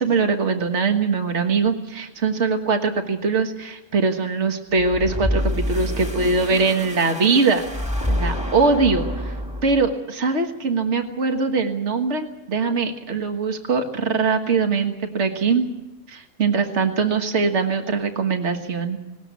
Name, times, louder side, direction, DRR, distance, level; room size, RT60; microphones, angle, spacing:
voice 1, 0.0-7.6 8.1-9.3 9.6-15.7 16.1-19.0, right 4 dB, 60° right, 6 dB, 1.8 m, -22 dB
sound 1, 4.8-10.0, equal, 5° right, 1.6 m, -27 dB
20.0 x 18.5 x 8.3 m, 0.95 s
omnidirectional pair, 1.3 m